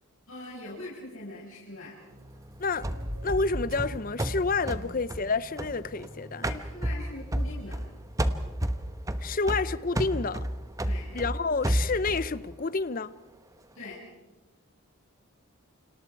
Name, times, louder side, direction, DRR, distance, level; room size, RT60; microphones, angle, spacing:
voice 1, 0.3-2.0 6.4-7.8 10.8-11.1 13.7-14.0, left 2 dB, 75° left, 6.0 m, -42 dB
sound 1, 2.1-8.9, equal, 45° right, 3.5 m, -43 dB
sound 2, 2.8-6.1 6.4-7.9 8.2-12.3, right 1 dB, 15° right, 1.0 m, -31 dB
voice 2, 3.2-6.5 9.2-10.5 11.1-13.1, left 4 dB, 40° left, 0.7 m, -29 dB
29.0 x 26.5 x 4.7 m
head